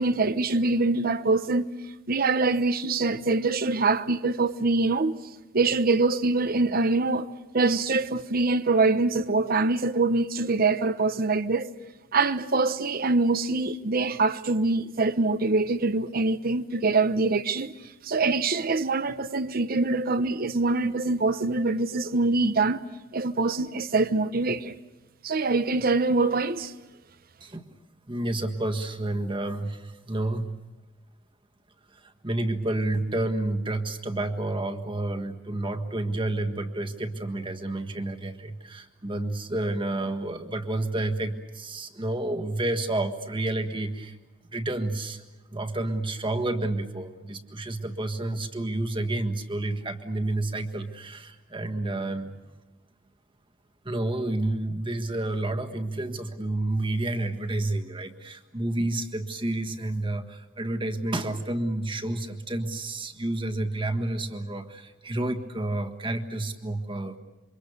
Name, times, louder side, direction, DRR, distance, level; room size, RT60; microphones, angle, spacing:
voice 1, 0.0-1.7 2.1-5.2 5.5-7.3 7.5-11.7 12.1-17.7 18.0-22.8 23.1-24.7 25.2-26.7, right 3 dB, 50° right, 0.9 m, -24 dB
voice 2, 28.1-30.5 31.9-44.2 44.5-45.2 45.5-52.4 53.8-67.2, right 2 dB, 25° right, 1.6 m, -30 dB
28.0 x 24.5 x 6.8 m
head